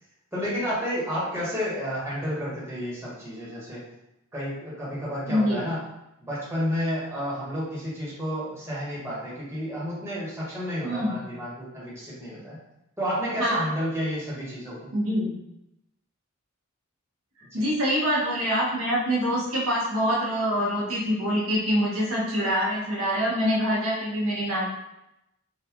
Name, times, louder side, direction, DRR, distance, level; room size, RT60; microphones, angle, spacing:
voice 1, 0.3-3.8 4.3-5.8 6.2-12.6 13.0-14.9 17.5-17.7, equal, 15° right, -8 dB, 1.1 m, -31 dB
voice 2, 5.3-5.6 10.8-11.2 13.4-13.6 14.9-15.4 17.5-24.7, equal, 80° right, -5 dB, 1.1 m, -25 dB
3.9 x 2.4 x 2.9 m, 0.86 s
head